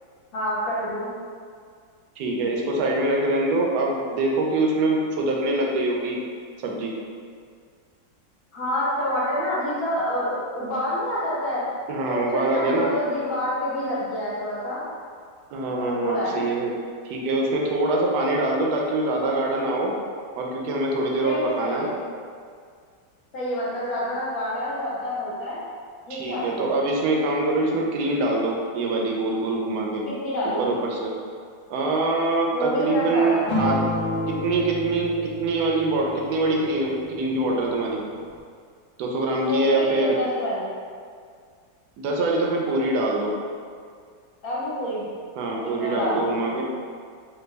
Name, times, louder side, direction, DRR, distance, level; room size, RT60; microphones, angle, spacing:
voice 1, 0.3-1.1 8.5-11.7 12.1-14.8 15.8-16.4 21.2-21.9 23.3-25.6 26.1-26.7 30.1-30.6 32.5-33.4 39.5-40.7 44.4-45.1 45.6-46.5, left 1 dB, 60° left, -8 dB, 1.2 m, -27 dB
voice 2, 2.2-6.2 6.6-6.9 11.9-12.9 15.5-16.7 17.0-19.9 20.4-21.9 26.1-30.0 30.6-31.1 31.7-33.8 34.3-38.0 39.0-40.2 42.0-43.3 45.4-46.6, right 2 dB, 75° right, -1 dB, 1.0 m, -24 dB
sound 1, 33.5-38.4, left 1 dB, 80° left, 1.3 m, -31 dB
3.4 x 2.3 x 3.2 m, 2.1 s
omnidirectional pair, 1.9 m